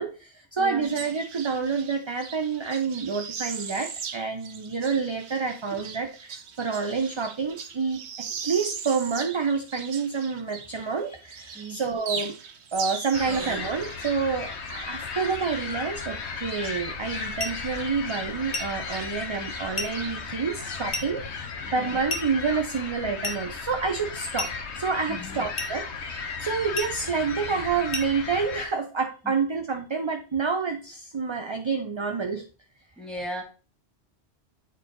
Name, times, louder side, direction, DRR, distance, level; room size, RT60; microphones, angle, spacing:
voice 1, 0.0-12.3 12.7-24.5 24.8-32.4, right 5 dB, 35° right, 4 dB, 0.5 m, -28 dB
voice 2, 0.6-0.9 11.5-11.8 13.3-13.6 21.6-22.0 25.1-25.5 29.2-29.3 33.0-33.4, right 1 dB, ahead, 0 dB, 1.7 m, -37 dB
sound 1, 0.8-11.0 11.3-17.4 17.6-20.4, right 6 dB, 80° right, 1.1 m, -39 dB
sound 2, 13.1-28.7, left 5 dB, 80° left, 1.1 m, -35 dB
sound 3, 17.4-17.6 18.5-18.8 19.8-20.0 20.9-21.2 22.1-22.4 23.2-23.5 24.4-24.6 25.6-25.8 26.7-27.0 27.9-28.2, left 2 dB, 45° left, 1.1 m, -32 dB
8.8 x 4.1 x 3.8 m, 0.34 s
omnidirectional pair, 1.1 m